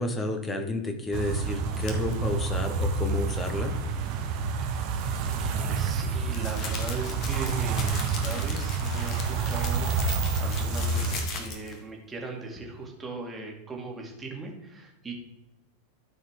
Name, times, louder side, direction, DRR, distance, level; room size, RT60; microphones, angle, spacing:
voice 1, 0.0-3.7, left 2 dB, 15° left, 6 dB, 1.5 m, -31 dB
sound 1, 1.1-11.2, right 4 dB, 40° right, 1.2 m, -28 dB
sound 2, 1.8-2.1 5.2-11.8, left 4 dB, 35° left, 1.6 m, -39 dB
voice 2, 4.6-4.9 5.2-15.1, right 3 dB, 15° right, 0 dB, 2.4 m, -39 dB
13.0 x 4.9 x 4.8 m, 0.91 s
figure-of-eight pair, 90°, 0 cm